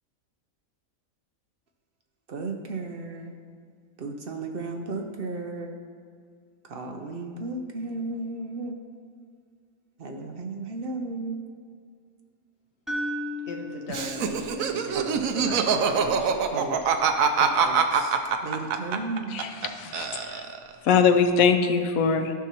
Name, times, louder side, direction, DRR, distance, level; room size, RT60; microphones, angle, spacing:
voice 1, 2.3-3.3 4.0-5.7 6.6-8.8 10.0-11.4 14.9-15.2 16.5-16.8 17.3-19.4, right 3 dB, 55° right, 3 dB, 0.7 m, -34 dB
sound 1, 12.9-16.9, left 1 dB, ahead, 0.4 m, -37 dB
voice 2, 13.5-16.6, left 1 dB, 55° left, 1 dB, 1.2 m, -37 dB
Laughter, 13.9-19.7 19.9-20.7, right 6 dB, 80° right, 1.1 m, -24 dB
voice 3, 19.3-20.4 20.8-22.3, left 6 dB, 90° left, 6 dB, 1.1 m, -22 dB
13.5 x 5.9 x 2.9 m, 2.1 s
omnidirectional pair, 1.4 m